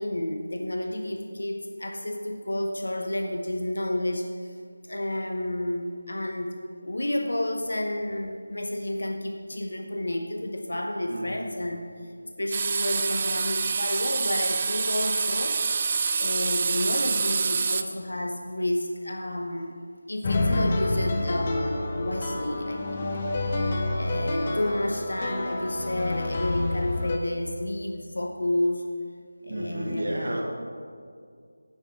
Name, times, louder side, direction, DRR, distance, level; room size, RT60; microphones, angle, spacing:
voice 1, 0.0-4.5 4.9-6.5 6.8-11.9 12.4-15.8 16.2-19.8 20.1-23.1 23.9-28.8 29.4-30.4, left 1 dB, 85° left, 3 dB, 0.9 m, -30 dB
sound 1, 12.5-17.8, right 5 dB, 30° right, 0.3 m, -26 dB
sound 2, 20.2-27.2, left 2 dB, 30° left, 0.7 m, -28 dB
voice 2, 29.5-30.4, right 1 dB, 65° right, -1 dB, 1.6 m, -31 dB
9.5 x 5.1 x 6.2 m, 2.2 s
figure-of-eight pair, 170°, 0 cm